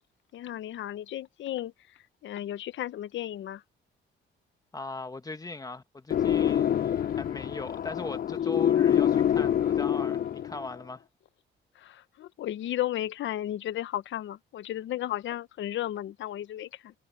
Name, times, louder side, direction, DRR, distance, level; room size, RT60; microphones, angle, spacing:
voice 1, 0.3-1.7 2.2-3.6 11.8-16.9, left 12 dB, 70° left, 0.9 m, -34 dB
voice 2, 4.7-11.0, left 3 dB, 20° left, 1.9 m, -39 dB
sound 1, 6.1-10.7, left 10 dB, 50° left, 0.5 m, -26 dB
cardioid pair, 90°, 20 cm